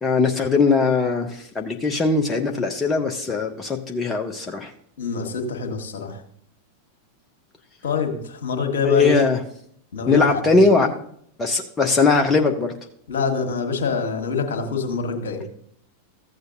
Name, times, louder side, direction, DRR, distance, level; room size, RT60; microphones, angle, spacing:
voice 1, 0.0-4.7 8.8-9.4 10.1-10.9 11.4-12.7, left 4 dB, 15° left, 3 dB, 0.7 m, -20 dB
voice 2, 5.0-6.2 7.8-9.2 9.9-10.9 13.1-15.4, left 5 dB, 60° left, 4 dB, 1.5 m, -25 dB
14.0 x 7.9 x 2.6 m, 0.66 s
figure-of-eight pair, 90°, 0 cm